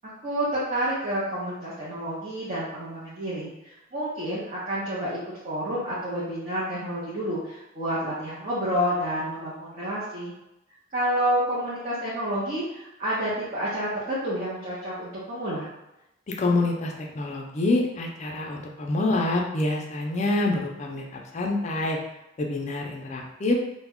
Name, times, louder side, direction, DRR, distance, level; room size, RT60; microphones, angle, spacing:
voice 1, 0.0-10.3 10.9-15.7, equal, 40° right, -9 dB, 0.6 m, -29 dB
voice 2, 16.4-21.0 21.3-22.0 22.4-23.6, left 2 dB, 35° left, 0 dB, 0.4 m, -26 dB
2.2 x 2.0 x 3.5 m, 0.91 s
head